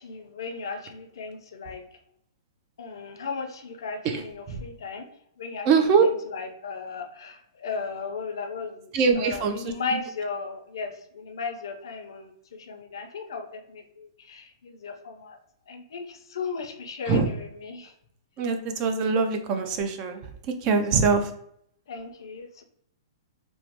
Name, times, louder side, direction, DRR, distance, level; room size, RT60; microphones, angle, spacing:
voice 1, 0.0-1.8 2.8-5.1 5.4-5.7 6.0-15.4 15.7-17.9 21.0-21.2 21.9-22.6, left 4 dB, 75° left, 6 dB, 0.5 m, -36 dB
voice 2, 4.0-4.6 5.7-6.0 8.9-9.6 17.1-17.3 18.4-20.2 20.6-21.3, right 5 dB, 30° right, 6 dB, 0.4 m, -23 dB
3.0 x 2.0 x 2.9 m, 0.70 s
hypercardioid pair, 155°, 2 cm